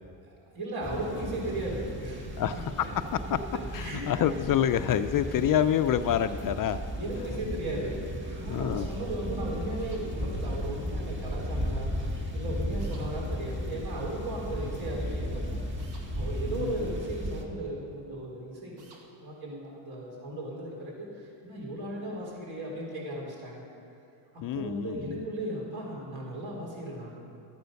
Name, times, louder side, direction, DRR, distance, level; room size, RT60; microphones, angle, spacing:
voice 1, 0.5-2.5 2.8-2.9 3.8-4.0 5.3-5.4 6.9-15.6 16.1-18.8 19.2-23.7 24.3-27.1, right 1 dB, 60° right, -3 dB, 3.8 m, -36 dB
sound 1, 0.8-17.4, equal, 25° right, 1.8 m, -35 dB
voice 2, 2.4-2.9 3.7-6.8 8.5-8.9 16.5-16.8 24.4-25.2, left 10 dB, 50° left, 10 dB, 0.5 m, -27 dB
sound 2, 9.8-10.1 12.8-13.1 15.8-16.1 18.8-19.1, right 3 dB, 80° right, 2.2 m, -54 dB
13.5 x 9.4 x 6.5 m, 2.5 s
cardioid pair, 105°, 43 cm